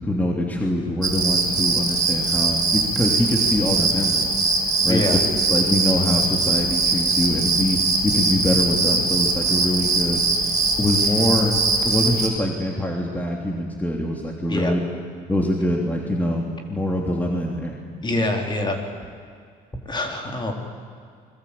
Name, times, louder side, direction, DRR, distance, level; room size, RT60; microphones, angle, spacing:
voice 1, 0.0-4.4 4.8-5.2 5.5-10.3 10.8-14.8 15.3-17.8, left 1 dB, 10° left, 0 dB, 3.2 m, -24 dB
sound 1, 1.0-12.3, right 3 dB, 25° right, 5.6 m, -21 dB
voice 2, 4.8-5.2 11.0-11.3 14.5-14.7 18.0-18.8 19.9-20.5, left 2 dB, 25° left, 3 dB, 4.2 m, -25 dB
28.5 x 22.5 x 8.7 m, 2.2 s
cardioid pair, 110°, 17 cm